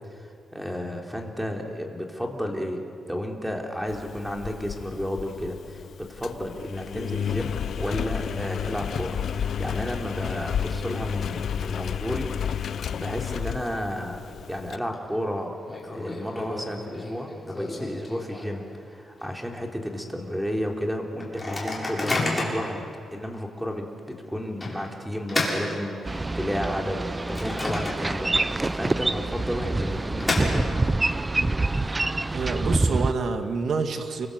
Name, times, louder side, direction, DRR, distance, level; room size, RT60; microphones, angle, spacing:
voice 1, 0.2-2.8 3.1-12.3 12.6-15.6 15.9-22.9 23.1-23.9 24.3-30.8, equal, 5° right, 1 dB, 3.7 m, -32 dB
Engine, 3.9-14.8, left 8 dB, 65° left, 0.6 m, -32 dB
Microwave oven, 14.4-14.9 15.2-15.3 15.7-18.7 19.2-19.3 19.5-19.9 20.4-20.5 21.2-22.7 23.3-23.5 24.6-26.4 26.9-28.4 28.7-28.8 29.6-31.0, left 2 dB, 15° left, 7.3 m, -31 dB
Boat Water vehicle, 26.0-33.1, right 2 dB, 20° right, 0.7 m, -26 dB
voice 2, 32.3-34.3, right 4 dB, 60° right, 5 dB, 2.5 m, -27 dB
29.5 x 24.0 x 8.1 m, 2.4 s
cardioid pair, 110°, 0 cm